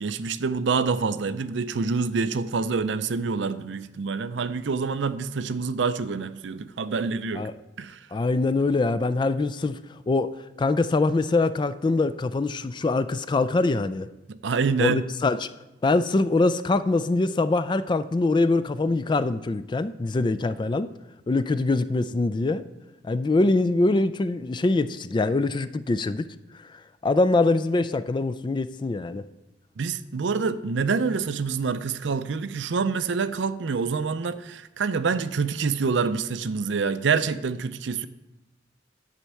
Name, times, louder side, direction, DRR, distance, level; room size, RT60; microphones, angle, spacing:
voice 1, 0.0-7.5 7.8-8.0 14.3-15.0 29.8-38.1, right 5 dB, 75° right, 0.5 m, -26 dB
voice 2, 8.1-9.8 10.1-14.1 14.8-15.5 15.8-20.9 21.3-22.7 23.0-26.3 26.6-29.2, left 2 dB, 25° left, 0.3 m, -23 dB
10.0 x 4.5 x 7.5 m
head